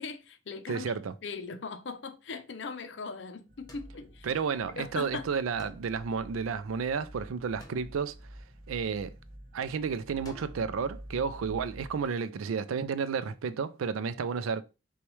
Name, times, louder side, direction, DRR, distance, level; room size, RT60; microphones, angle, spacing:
voice 1, 0.0-0.9 1.2-4.3 4.7-5.3, left 4 dB, 60° left, 0.5 m, -39 dB
voice 2, 0.7-1.1 4.2-8.2 8.7-9.1 9.5-14.6, right 6 dB, 90° right, 0.4 m, -32 dB
sound 1, 3.5-12.1, equal, 40° right, 0.8 m, -49 dB
sound 2, 3.7-4.9 5.6-7.0 7.6-9.0 10.3-10.8, left 1 dB, 20° left, 0.7 m, -55 dB
6.0 x 2.3 x 3.1 m
head